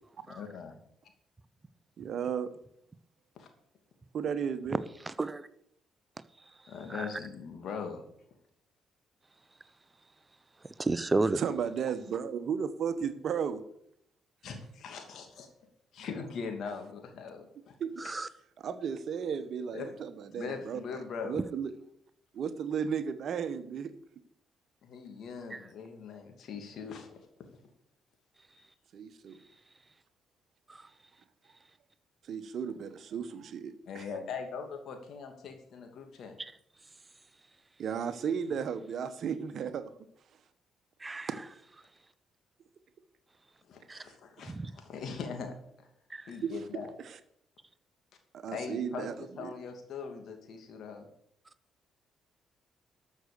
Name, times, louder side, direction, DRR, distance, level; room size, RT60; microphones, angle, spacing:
voice 1, 0.3-0.8 3.4-3.5 6.7-8.0 14.4-15.5 15.9-17.7 18.0-18.1 19.7-19.9 20.3-21.4 24.8-27.1 33.9-36.3 43.7-45.5 46.3-46.9 48.5-49.1 49.4-51.1, left 5 dB, 65° left, 2.6 m, -41 dB
voice 2, 2.0-2.5 4.1-4.8 11.3-13.6 17.8-18.0 18.6-21.7 22.3-23.9 28.9-29.4 32.3-34.0 37.8-39.9 43.9-44.1 46.4-47.2 48.3-49.1 49.4-49.5, right 7 dB, 60° right, 1.1 m, -34 dB
voice 3, 10.8-11.4 18.0-18.3 41.0-41.3 43.9-44.0 46.1-46.2, right 2 dB, 25° right, 0.8 m, -30 dB
13.0 x 6.5 x 6.8 m
hypercardioid pair, 50°, 0 cm